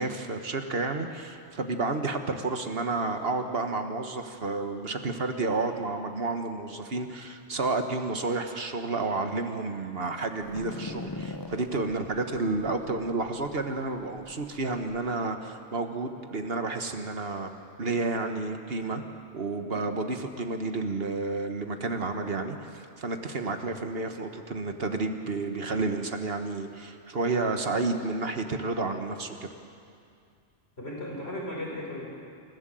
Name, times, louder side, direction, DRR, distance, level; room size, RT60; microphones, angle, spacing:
voice 1, 0.0-17.5 17.8-19.0 19.3-29.5, right 3 dB, 60° right, 6 dB, 1.6 m, -31 dB
sound 1, 10.4-15.1, left 2 dB, 20° left, 0.7 m, -42 dB
voice 2, 30.8-32.0, left 1 dB, 65° left, -3 dB, 5.5 m, -36 dB
28.0 x 15.5 x 7.7 m, 2.4 s
omnidirectional pair, 1.2 m